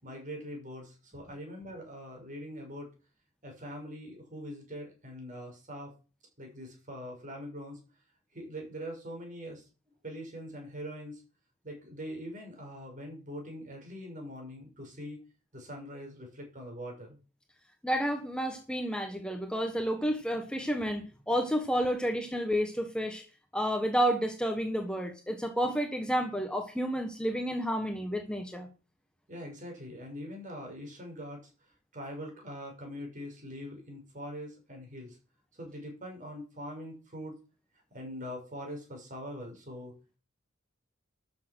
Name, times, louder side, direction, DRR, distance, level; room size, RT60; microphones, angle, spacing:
voice 1, 0.0-2.9 3.4-5.9 6.4-7.8 8.3-9.6 10.0-11.2 11.6-15.2 15.5-17.2 29.3-31.5 31.9-35.2 35.6-37.4 37.9-39.9, equal, 40° right, 1 dB, 6.5 m, -42 dB
voice 2, 17.8-23.2 23.5-28.7, equal, 5° left, 4 dB, 1.4 m, -30 dB
13.0 x 7.7 x 6.3 m, 0.34 s
head